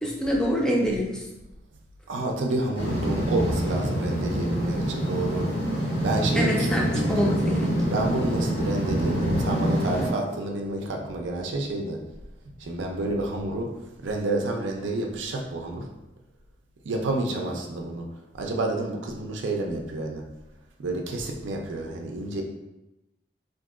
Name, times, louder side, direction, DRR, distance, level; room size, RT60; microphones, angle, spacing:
voice 1, 0.0-1.1 6.3-7.7, equal, 5° left, -2 dB, 0.5 m, -25 dB
voice 2, 2.1-5.5 5.8-7.3 7.9-12.0 12.6-13.7 14.0-15.9 16.9-18.1 18.4-20.2 20.8-22.4, right 2 dB, 85° right, 1 dB, 0.5 m, -29 dB
sound 1, 2.7-10.1, equal, 85° left, 1.3 m, -26 dB
3.7 x 2.6 x 2.4 m, 0.97 s
head